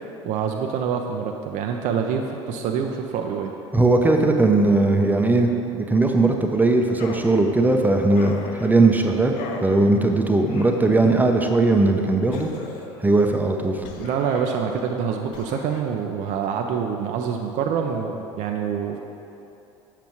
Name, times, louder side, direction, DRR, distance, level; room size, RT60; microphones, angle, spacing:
voice 1, 0.2-3.5 14.0-19.0, right 7 dB, 55° right, 2 dB, 0.5 m, -26 dB
voice 2, 3.7-9.3 9.6-12.5 13.0-13.9, right 2 dB, 10° right, 3 dB, 0.6 m, -19 dB
sound 1, 7.0-7.4 8.2-8.7 9.4-9.8 10.5-11.1 12.3-13.0 13.8-14.5 15.3-15.8, left 5 dB, 60° left, 0.7 m, -38 dB
7.3 x 6.8 x 3.0 m, 2.9 s
hypercardioid pair, 70°, 16 cm